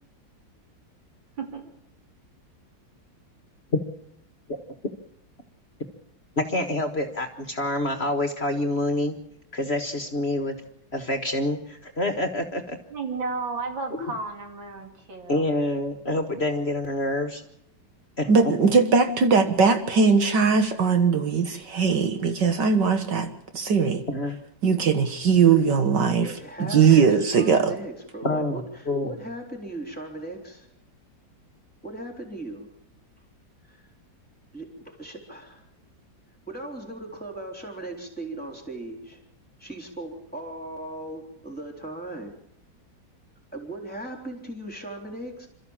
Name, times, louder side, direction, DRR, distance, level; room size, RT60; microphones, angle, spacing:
voice 1, 6.4-9.1 9.5-10.6 10.9-12.8 13.9-14.1 15.3-17.4 18.2-18.3 24.1-24.4 28.2-29.1, left 1 dB, 35° left, 1.6 m, -27 dB
voice 2, 12.9-15.4, right 4 dB, 85° right, 3.6 m, -33 dB
voice 3, 18.3-24.0 24.6-27.8, right 5 dB, 65° right, 2.1 m, -20 dB
voice 4, 26.1-30.7 31.8-32.7 33.7-33.9 34.5-35.6 36.5-39.2 39.6-42.5 43.5-45.5, right 2 dB, 5° left, 3.6 m, -38 dB
27.5 x 13.5 x 7.3 m
omnidirectional pair, 2.0 m